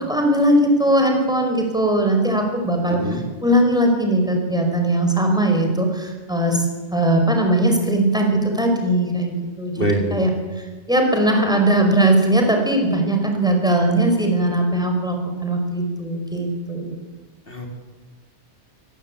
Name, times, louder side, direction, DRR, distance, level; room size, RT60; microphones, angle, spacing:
voice 1, 0.0-9.7 10.1-10.3 10.6-17.0, right 1 dB, 5° right, 3 dB, 5.3 m, -19 dB
voice 2, 2.9-3.2 9.8-10.2 17.5-17.7, right 1 dB, 50° left, 2 dB, 4.0 m, -24 dB
23.5 x 19.5 x 8.6 m, 1.2 s
omnidirectional pair, 1.2 m